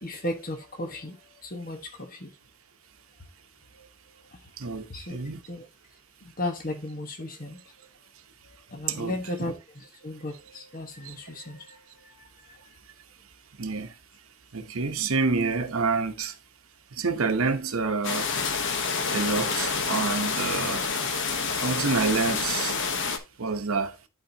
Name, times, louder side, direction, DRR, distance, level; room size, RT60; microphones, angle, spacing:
voice 1, 0.0-1.2 1.4-2.3 4.9-5.2 5.5-5.6 6.4-7.6 8.7-11.7, left 1 dB, 40° left, 1.3 m, -35 dB
voice 2, 5.1-5.4 8.9-9.3 11.0-11.1 13.6-13.9 14.5-16.3 17.0-18.3 19.1-20.8 21.6-22.8 23.4-23.9, right 4 dB, 70° right, 0.9 m, -27 dB
sound 1, 18.0-23.2, left 5 dB, 60° left, 1.1 m, -28 dB
11.5 x 4.4 x 2.8 m
head